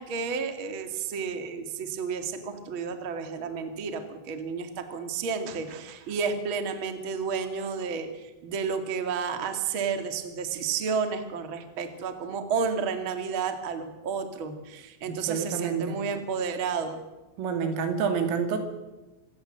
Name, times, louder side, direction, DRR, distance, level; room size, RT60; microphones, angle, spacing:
voice 1, 0.0-17.0, right 5 dB, 50° right, 7 dB, 1.5 m, -31 dB
voice 2, 15.1-16.0 17.4-18.6, right 6 dB, 75° right, 6 dB, 5.1 m, -28 dB
26.0 x 16.5 x 7.7 m, 1.1 s
omnidirectional pair, 5.9 m